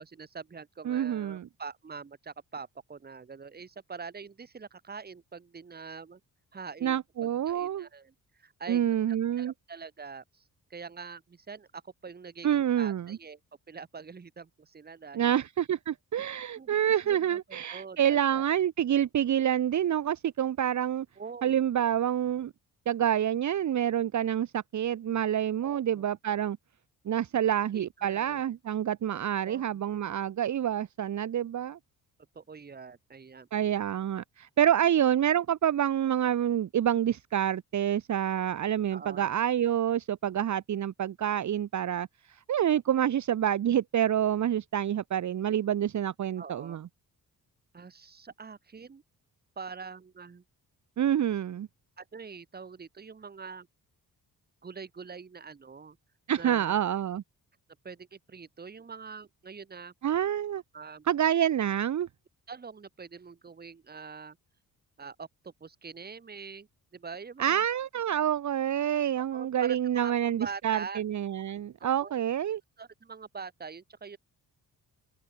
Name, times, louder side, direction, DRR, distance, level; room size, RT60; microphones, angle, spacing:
voice 1, 0.0-6.2 6.5-8.8 9.1-13.4 13.7-15.4 16.6-16.8 17.0-18.4 21.2-21.6 25.6-26.1 27.7-28.5 29.5-29.8 32.3-33.5 38.9-39.3 46.4-46.8 47.7-49.0 49.6-50.4 52.0-53.7 54.6-56.0 56.4-56.8 57.8-59.9 60.7-61.0 62.5-64.4 65.0-67.6 69.3-71.0 71.8-72.2 72.8-74.2, right 5 dB, 25° right, 2.5 m, -44 dB
voice 2, 0.8-1.5 6.8-7.9 8.7-9.5 12.4-13.2 15.1-21.0 21.4-22.5 22.9-26.6 27.0-31.8 33.5-46.8 51.0-51.7 56.3-57.2 60.0-60.6 61.1-62.1 67.4-72.6, right 10 dB, 50° right, 1.4 m, -27 dB
open air
wide cardioid pair, 170°, 36 cm